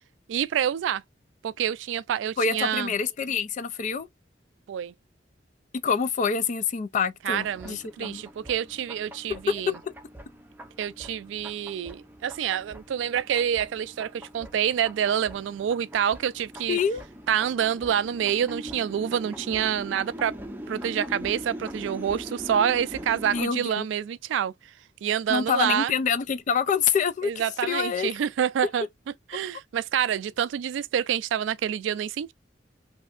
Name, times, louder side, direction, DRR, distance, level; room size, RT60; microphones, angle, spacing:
voice 1, 0.3-1.0 1.4-2.9 4.7-4.9 7.2-9.7 10.8-16.8 17.3-20.4 20.7-24.5 25.0-25.9 27.2-28.8 29.3-32.3, right 9 dB, 85° right, 0.3 m, -27 dB
voice 2, 2.4-4.1 5.7-8.2 9.5-9.9 16.7-17.0 23.3-23.9 25.3-28.1, left 6 dB, 45° left, 0.4 m, -26 dB
sound 1, 7.4-23.4, equal, 10° right, 0.6 m, -42 dB
3.2 x 2.7 x 2.4 m
head